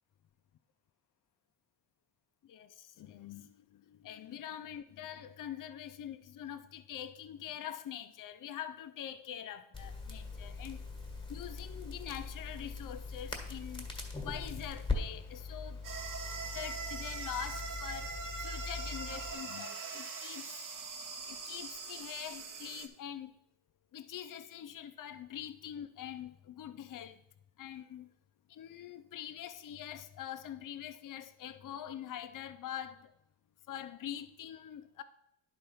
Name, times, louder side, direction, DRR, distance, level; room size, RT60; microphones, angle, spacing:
voice 1, 2.4-10.8 11.3-13.9 14.2-15.8 16.5-20.7 21.3-23.3 23.9-27.2 27.6-28.1 28.5-33.1 33.7-35.0, left 10 dB, 50° left, 0.6 m, -44 dB
Crackle, 9.7-19.3, left 3 dB, 10° left, 1.6 m, -41 dB
sound 1, 15.8-22.9, right 4 dB, 50° right, 1.0 m, -42 dB
10.5 x 4.0 x 5.6 m
cardioid pair, 105°, 42 cm